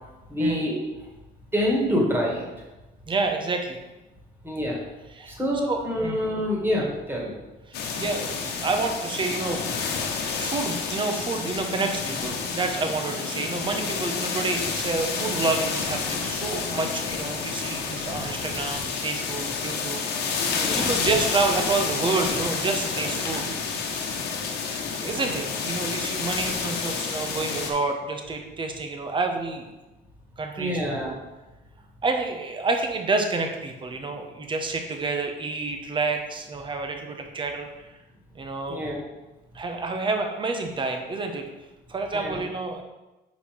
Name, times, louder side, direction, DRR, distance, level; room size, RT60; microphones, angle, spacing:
voice 1, 0.3-0.8 1.5-2.5 4.4-4.8 5.3-7.4 20.5-20.9 30.6-31.1 38.7-39.0 42.1-42.4, equal, 15° right, -2 dB, 2.0 m, -26 dB
voice 2, 3.1-3.8 5.2-5.4 5.7-6.2 7.7-9.6 10.1-23.4 24.3-24.4 25.0-29.7 30.4-31.1 32.0-37.7 38.3-38.9 39.5-41.4 41.9-42.8, right 3 dB, 30° right, 4 dB, 1.0 m, -29 dB
sound 1, 7.7-27.7, left 5 dB, 75° left, 1.1 m, -29 dB
5.2 x 4.9 x 5.1 m, 1.1 s
cardioid pair, 110°, 17 cm